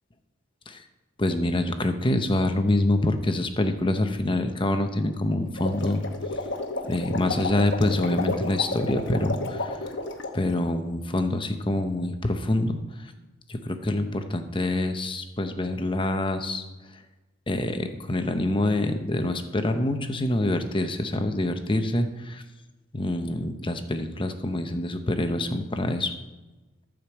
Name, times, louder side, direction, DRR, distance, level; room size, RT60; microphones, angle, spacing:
voice 1, 1.2-6.0 6.9-9.7 10.3-12.8 13.5-16.6 17.5-22.4 22.9-26.1, left 1 dB, 25° left, 7 dB, 0.9 m, -26 dB
sound 1, 5.5-10.4, left 2 dB, 60° left, 1.2 m, -31 dB
13.0 x 5.2 x 7.2 m, 1.2 s
head